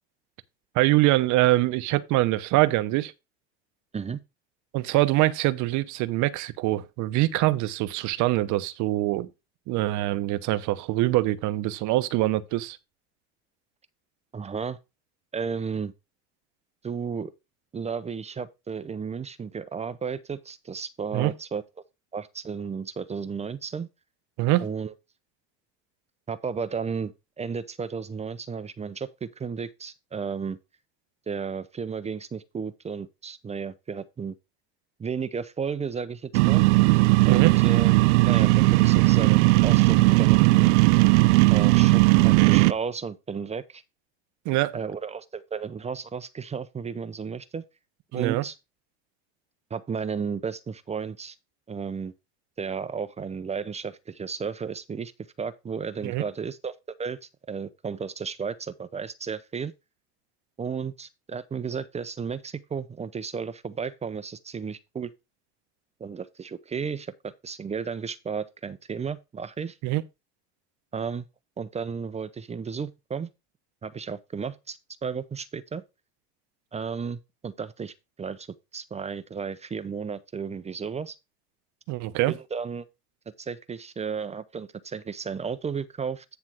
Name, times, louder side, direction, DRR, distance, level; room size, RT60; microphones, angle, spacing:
voice 1, 0.7-3.1 4.7-9.3 9.7-12.8 21.1-21.3 24.4-24.7 37.3-37.5 44.4-44.8 48.1-48.4 56.0-56.2 69.8-70.0 81.9-82.3, right 17 dB, 60° right, 0.9 m, -24 dB
voice 2, 14.3-14.8 15.3-15.9 16.8-17.3 17.7-21.6 22.1-23.9 24.6-24.9 26.3-30.6 31.3-34.4 35.0-36.6 37.2-37.9 38.2-40.7 41.5-43.8 44.7-47.6 48.1-48.5 49.7-51.4 51.7-52.1 52.6-55.1 55.4-57.2 57.5-59.7 60.6-65.1 66.0-69.8 70.9-71.3 71.6-73.3 73.8-75.8 76.7-78.5 78.7-81.2 82.3-82.9 83.4-86.2, right 6 dB, 20° right, 0.6 m, -33 dB
sound 1, 36.3-42.7, right 23 dB, 80° right, 0.5 m, -18 dB
9.9 x 3.4 x 5.9 m
supercardioid pair, 100°, 34 cm